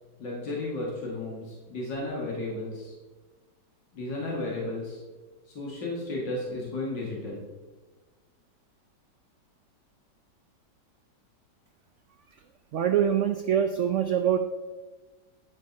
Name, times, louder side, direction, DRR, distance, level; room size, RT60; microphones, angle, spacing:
voice 1, 0.2-2.9 3.9-5.0 5.5-7.4, left 2 dB, 90° left, -4 dB, 2.5 m, -33 dB
voice 2, 12.7-14.4, right 9 dB, 85° right, 7 dB, 0.6 m, -24 dB
10.0 x 5.4 x 5.3 m, 1.3 s
omnidirectional pair, 1.9 m